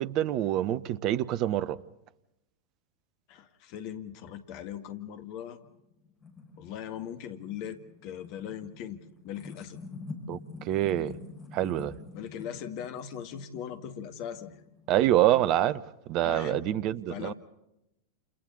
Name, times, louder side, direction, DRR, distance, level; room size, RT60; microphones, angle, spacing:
voice 1, 0.0-1.8 10.3-11.1 11.5-11.9 14.9-15.8 16.1-17.3, right 13 dB, 40° right, 0.8 m, -26 dB
voice 2, 3.3-5.6 6.6-9.8 12.1-14.6 16.2-16.7 17.1-17.3, left 9 dB, 45° left, 1.7 m, -39 dB
sound 1, 5.6-15.7, left 3 dB, 25° left, 6.2 m, -47 dB
29.5 x 29.5 x 4.1 m
figure-of-eight pair, 90°, 0 cm